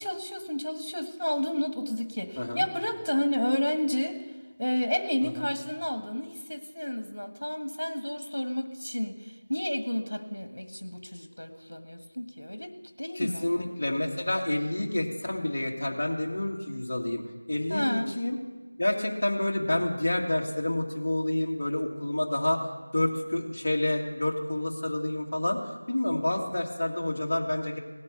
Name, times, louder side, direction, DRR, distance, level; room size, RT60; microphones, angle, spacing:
voice 1, 0.0-4.2 4.6-12.7 13.0-13.5 17.7-18.1, left 1 dB, 70° left, 7 dB, 1.7 m, -31 dB
voice 2, 13.2-17.2 17.5-18.4 18.8-22.7 22.9-27.8, left 1 dB, 40° left, 0 dB, 2.0 m, -29 dB
18.0 x 9.5 x 6.8 m, 1.3 s
figure-of-eight pair, 170°, 0 cm